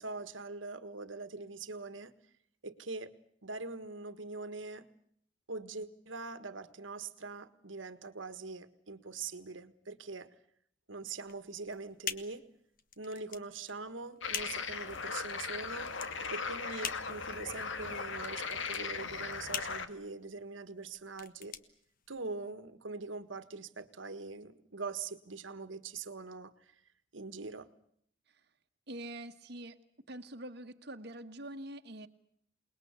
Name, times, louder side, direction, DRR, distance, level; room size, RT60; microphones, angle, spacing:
voice 1, 0.0-2.1 2.6-3.1 3.4-4.9 5.5-10.3 10.9-12.4 13.0-15.9 16.3-21.5 22.1-26.5 27.1-27.7, right 3 dB, 85° right, 12 dB, 1.6 m, -43 dB
sound 1, 11.2-22.5, left 7 dB, 45° left, 1.4 m, -44 dB
sound 2, 14.2-19.9, left 5 dB, 75° left, 1.8 m, -38 dB
voice 2, 28.9-29.8 30.1-32.1, right 1 dB, 55° right, 5 dB, 1.5 m, -45 dB
28.0 x 20.5 x 8.1 m, 0.67 s
head